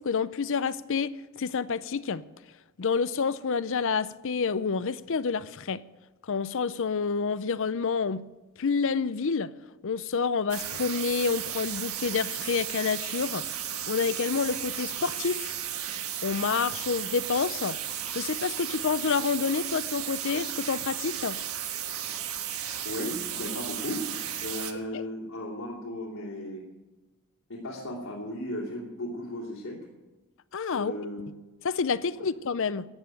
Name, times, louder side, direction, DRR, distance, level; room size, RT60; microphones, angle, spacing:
voice 1, 0.0-2.2 2.8-5.8 6.2-8.2 8.6-9.5 9.8-13.4 13.9-15.5 16.2-17.8 18.1-21.4 24.9-25.0 30.5-30.9 31.6-32.8, left 5 dB, 60° left, 0.6 m, -28 dB
sound 1, 10.5-24.7, right 10 dB, 75° right, 1.5 m, -34 dB
voice 2, 22.8-24.1 24.4-26.7 27.5-29.8 30.7-31.3 32.1-32.2, left 1 dB, 75° left, 3.1 m, -36 dB
14.5 x 9.1 x 9.1 m
head